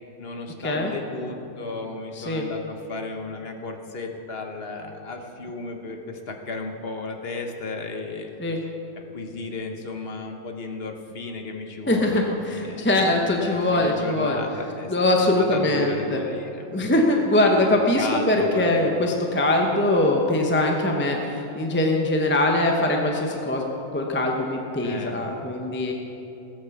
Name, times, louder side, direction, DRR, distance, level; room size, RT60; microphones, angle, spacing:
voice 1, 0.2-8.3 9.1-13.1 13.7-16.6 17.4-18.7 24.8-25.2, left 3 dB, 50° left, 4 dB, 1.3 m, -34 dB
voice 2, 2.2-2.5 8.4-8.6 11.9-14.4 14.9-16.2 16.7-23.6 23.9-25.9, left 1 dB, 10° left, 1 dB, 0.9 m, -22 dB
16.0 x 8.7 x 7.1 m, 2.9 s
omnidirectional pair, 1.4 m